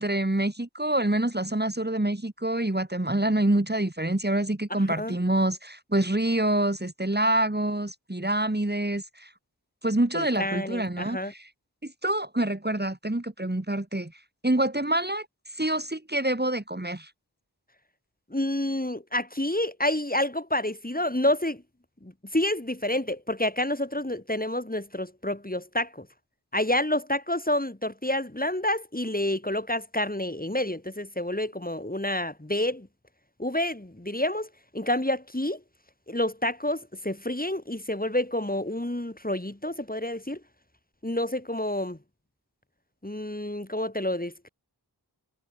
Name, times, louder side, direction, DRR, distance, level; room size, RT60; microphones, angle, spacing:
voice 1, 0.0-9.3 9.8-11.5 11.8-14.1 14.4-15.3 15.5-17.1, right 1 dB, 25° right, 4.3 m, -26 dB
voice 2, 10.1-11.3 18.3-21.6 22.0-26.1 26.5-32.9 33.4-34.5 34.7-35.6 36.1-40.4 41.0-42.0 43.0-44.5, left 1 dB, 20° left, 6.4 m, -28 dB
wide cardioid pair, 45°, 40 cm